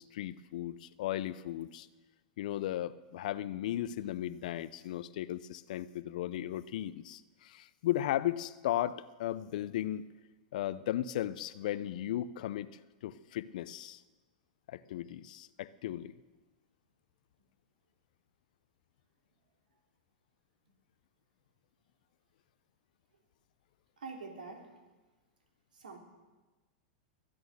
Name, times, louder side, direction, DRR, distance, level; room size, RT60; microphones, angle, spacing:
voice 1, 0.0-1.9 2.4-10.0 10.5-12.7 13.0-14.0 14.7-16.1, left 13 dB, 65° left, 17 dB, 0.6 m, -36 dB
voice 2, 24.0-24.8 25.7-26.0, right 4 dB, 85° right, 3 dB, 2.9 m, -45 dB
22.0 x 9.0 x 6.6 m, 1.2 s
hypercardioid pair, 105°, 5 cm